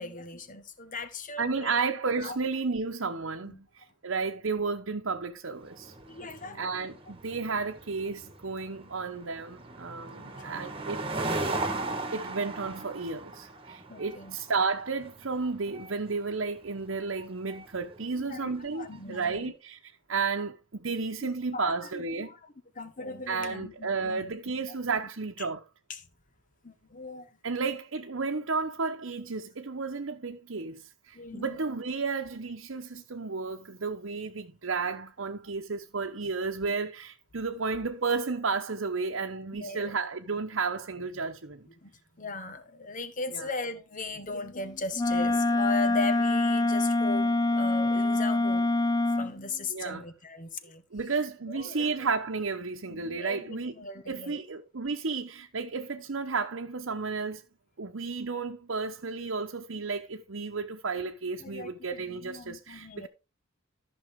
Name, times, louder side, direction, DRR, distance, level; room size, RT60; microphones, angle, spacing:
voice 1, 0.0-1.8 2.2-2.4 3.4-3.6 6.1-6.7 10.0-10.8 13.9-14.4 18.1-19.5 21.2-24.3 25.4-25.5 25.9-26.1 26.6-27.4 31.1-31.6 39.5-39.9 41.8-48.6 49.1-50.8 51.5-52.1 52.9-54.4 61.4-63.1, left 3 dB, 40° left, 1.5 m, -38 dB
voice 2, 1.4-5.9 6.6-11.0 11.3-11.4 12.1-19.8 20.1-22.3 23.3-25.6 27.4-41.7 43.3-43.4 49.7-50.0 50.9-53.7 54.1-57.4 57.8-63.1, right 4 dB, 70° right, 0.9 m, -32 dB
sound 1, 5.6-19.1, right 2 dB, 25° right, 1.8 m, -38 dB
Wind instrument woodwind instrument, 44.9-49.3, left 2 dB, 20° left, 0.4 m, -25 dB
14.0 x 6.2 x 3.6 m
head